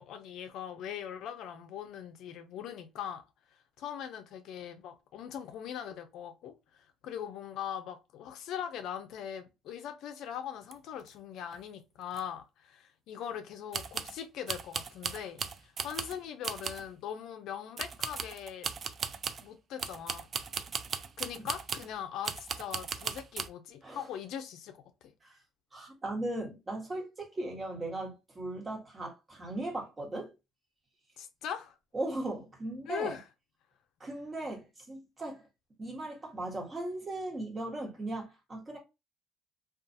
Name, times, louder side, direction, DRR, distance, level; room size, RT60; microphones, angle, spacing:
voice 1, 0.0-3.2 3.8-18.7 19.4-20.3 21.2-25.1 31.2-31.8 32.9-33.2, left 9 dB, 65° left, 0.4 m, -41 dB
sound 1, 10.7-10.8 11.0-11.1 11.5-11.6 12.1-12.2 13.7-14.2 14.5-16.2 16.4-16.9 17.8-19.5 19.8-21.9 22.2-23.5, right 6 dB, 40° right, 0.3 m, -37 dB
voice 2, 25.7-30.3 31.9-33.2 34.0-35.4 35.8-38.8, right 2 dB, 25° right, 1.2 m, -38 dB
2.5 x 2.3 x 2.6 m
cardioid pair, 95°, 0 cm